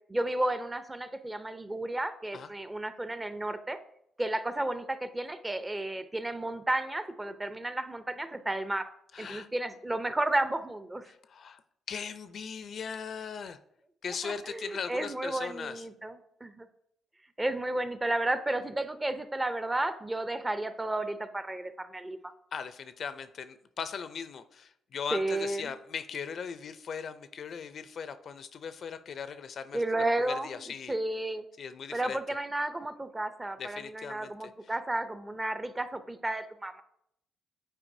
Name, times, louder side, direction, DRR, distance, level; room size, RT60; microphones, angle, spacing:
voice 1, 0.1-3.8 4.2-8.9 9.2-11.1 14.2-16.2 16.4-16.7 17.4-22.3 25.1-25.7 29.7-30.5 30.9-31.4 31.9-36.8, right 1 dB, 15° right, 10 dB, 0.5 m, -32 dB
voice 2, 9.1-9.5 11.1-11.6 11.9-13.6 14.0-15.9 22.5-29.8 30.2-31.0 31.6-32.2 33.6-34.7, left 6 dB, 55° left, 12 dB, 0.4 m, -39 dB
8.9 x 4.6 x 2.7 m, 0.74 s
cardioid pair, 90°, 0 cm